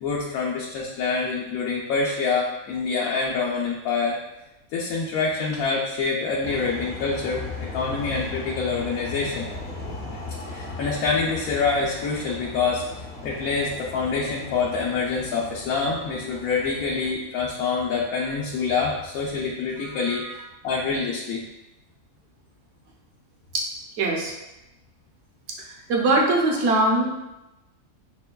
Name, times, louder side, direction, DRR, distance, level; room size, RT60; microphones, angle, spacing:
voice 1, 0.0-4.2 4.7-7.4 7.7-9.5 10.5-12.8 13.2-20.2 20.6-21.4, left 4 dB, 85° left, -3 dB, 1.1 m, -26 dB
sound 1, 6.4-17.1, left 3 dB, 55° left, 0.8 m, -37 dB
voice 2, 20.0-20.3 23.5-23.6 24.0-24.3 25.9-27.1, right 2 dB, 65° right, -1 dB, 1.0 m, -21 dB
6.5 x 2.2 x 2.2 m, 0.96 s
omnidirectional pair, 1.5 m